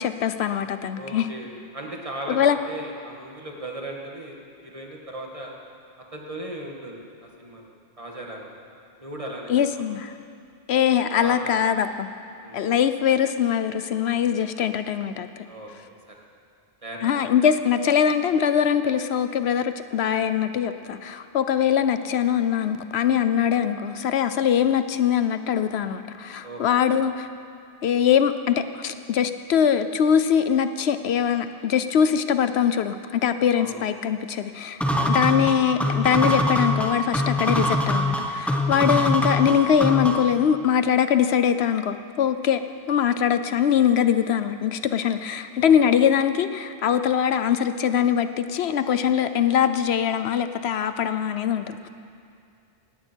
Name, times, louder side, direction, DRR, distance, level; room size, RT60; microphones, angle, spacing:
voice 1, 0.0-1.3 2.3-2.6 9.5-10.2 10.7-12.1 12.5-15.5 17.0-27.3 27.8-42.6 42.9-51.9, left 8 dB, 75° left, 11 dB, 0.9 m, -22 dB
voice 2, 1.0-5.5 6.1-8.5 9.0-9.8 11.2-11.6 12.4-12.6 15.4-15.7 16.1-16.2 16.8-17.3 26.4-27.0 33.5-33.8 34.8-35.2 45.6-46.1, right 1 dB, 30° right, -1 dB, 2.0 m, -37 dB
sound 1, 34.8-40.4, left 1 dB, ahead, 1.0 m, -23 dB
18.0 x 16.5 x 4.5 m, 2.4 s
omnidirectional pair, 1.1 m